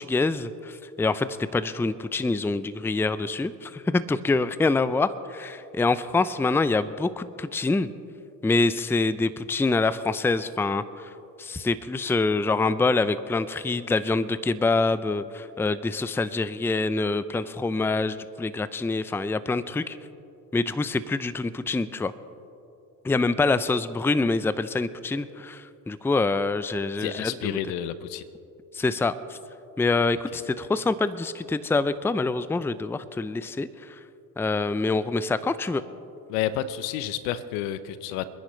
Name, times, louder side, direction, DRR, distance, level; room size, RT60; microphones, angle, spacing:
voice 1, 0.0-7.9 8.4-11.1 11.4-20.0 20.5-22.1 23.0-27.6 28.7-29.4 29.8-34.0 34.4-35.8, left 3 dB, 5° left, 15 dB, 0.5 m, -25 dB
voice 2, 27.0-28.2 36.3-38.2, left 11 dB, 75° left, 14 dB, 1.0 m, -30 dB
28.5 x 10.5 x 3.3 m, 2.7 s
hypercardioid pair, 65°, 49 cm